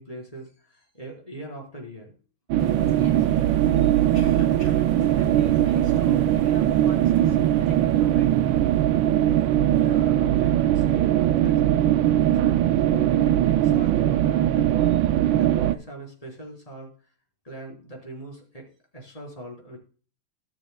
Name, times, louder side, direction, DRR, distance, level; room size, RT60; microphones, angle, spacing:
voice 1, 0.0-2.1 9.8-14.9 15.3-16.9 17.4-18.7 18.9-19.8, right 1 dB, 15° left, -1 dB, 4.2 m, -40 dB
sound 1, 2.5-15.8, right 12 dB, 75° right, 1.2 m, -20 dB
sound 2, 2.6-11.6 12.2-12.4 12.6-12.8, left 1 dB, 45° left, 2.1 m, -46 dB
voice 2, 2.9-3.6 4.1-8.7 19.1-19.2, equal, 70° left, 0 dB, 4.8 m, -46 dB
19.0 x 6.9 x 2.2 m, 0.40 s
omnidirectional pair, 2.4 m